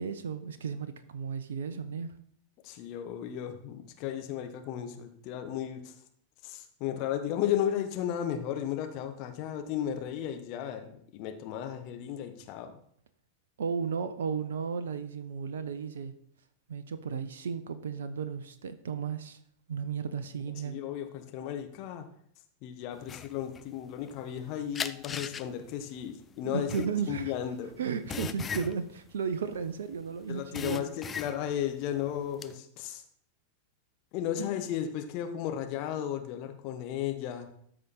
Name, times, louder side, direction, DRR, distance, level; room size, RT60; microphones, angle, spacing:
voice 1, 0.0-2.1 13.6-16.1 16.7-19.4 19.7-20.8 26.4-27.3 27.8-30.9 34.4-34.5, right 6 dB, 65° right, 11 dB, 0.6 m, -34 dB
voice 2, 2.6-5.9 6.4-12.8 20.6-22.1 22.6-27.7 30.3-33.0 34.1-37.5, left 10 dB, 45° left, 7 dB, 1.0 m, -34 dB
sound 1, 23.0-24.4 24.7-30.0 30.3-31.7 32.0-32.5, left 7 dB, 20° left, 0.4 m, -38 dB
13.0 x 5.0 x 4.1 m, 0.63 s
figure-of-eight pair, 90°, 0 cm